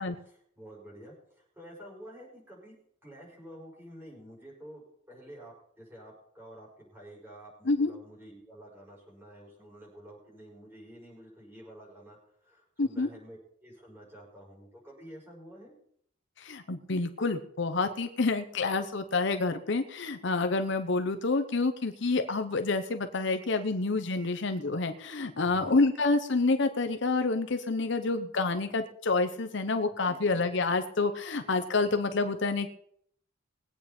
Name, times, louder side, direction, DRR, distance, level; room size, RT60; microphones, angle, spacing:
voice 1, 0.2-2.8 3.0-15.8 25.4-25.8 30.0-30.5, equal, 10° right, -4 dB, 5.6 m, -50 dB
voice 2, 16.4-32.7, left 3 dB, 60° left, 8 dB, 0.8 m, -28 dB
21.0 x 8.7 x 4.3 m, 0.68 s
head